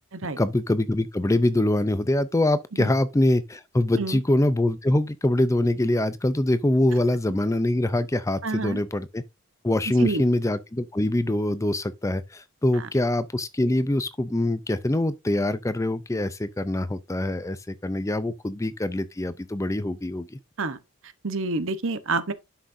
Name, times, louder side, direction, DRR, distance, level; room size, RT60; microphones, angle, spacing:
voice 1, 0.4-9.2 9.6-20.4, left 1 dB, 15° left, 0.5 m, -24 dB
voice 2, 8.4-8.8 10.0-10.2 12.7-12.9 20.6-20.8 21.2-22.3, right 3 dB, 60° right, 1.0 m, -28 dB
11.5 x 6.3 x 2.6 m
head